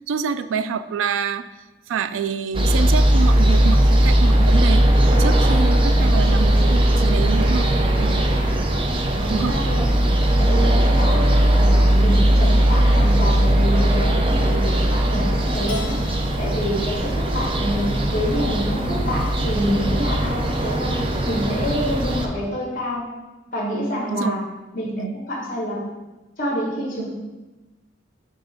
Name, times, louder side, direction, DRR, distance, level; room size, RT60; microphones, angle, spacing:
voice 1, 0.1-1.4 1.9-4.9 5.2-7.7 8.0-8.3 9.3-9.5 24.0-24.4 25.0-25.2 27.0-27.1, right 6 dB, 90° right, 12 dB, 0.3 m, -26 dB
sound 1, 2.5-22.3, right 1 dB, 25° right, 0.5 m, -18 dB
voice 2, 9.2-9.9 10.4-11.2 11.5-15.9 16.4-21.0 21.2-23.1 23.5-24.4 24.7-25.8 26.4-27.1, equal, 45° left, -3 dB, 1.5 m, -27 dB
Keyboard (musical), 15.7-18.0, left 4 dB, 75° left, 0.5 m, -39 dB
7.4 x 2.6 x 5.2 m, 1.1 s
head